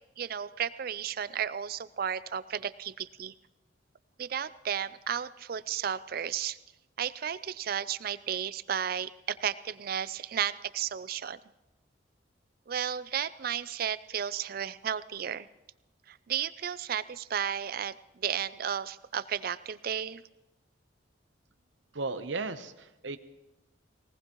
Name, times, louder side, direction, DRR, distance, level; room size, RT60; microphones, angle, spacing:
voice 1, 0.2-3.3 4.2-6.6 7.0-11.4 12.7-15.5 16.1-20.2, right 8 dB, 50° right, 16 dB, 0.4 m, -33 dB
voice 2, 21.9-23.2, right 3 dB, 80° right, 10 dB, 0.9 m, -35 dB
20.5 x 19.0 x 3.0 m, 0.98 s
head